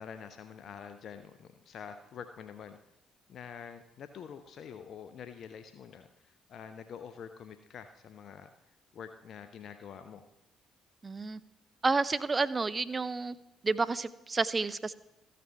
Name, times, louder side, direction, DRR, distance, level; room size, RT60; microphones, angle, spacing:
voice 1, 0.0-2.8 3.3-10.2, left 7 dB, 60° left, 9 dB, 0.6 m, -47 dB
voice 2, 11.0-11.4 11.8-13.4 13.6-14.9, right 3 dB, 30° right, 15 dB, 0.6 m, -30 dB
14.0 x 6.8 x 5.7 m, 0.93 s
hypercardioid pair, 50°, 0 cm